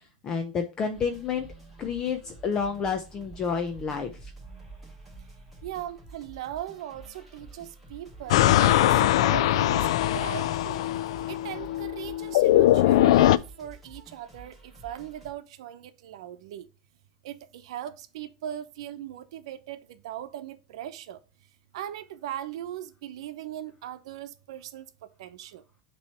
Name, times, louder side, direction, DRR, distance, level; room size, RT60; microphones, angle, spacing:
voice 1, 0.2-1.5 1.8-4.3, left 6 dB, 20° left, 0.6 m, -29 dB
sound 1, 0.9-15.3, right 2 dB, ahead, 2.0 m, -49 dB
voice 2, 5.6-10.8 11.3-16.7 17.2-21.2 21.7-24.8 25.2-25.6, right 11 dB, 75° right, 0.8 m, -39 dB
sound 2, 8.3-13.4, left 14 dB, 75° left, 0.3 m, -21 dB
7.1 x 3.1 x 5.5 m
supercardioid pair, 165°, 3 cm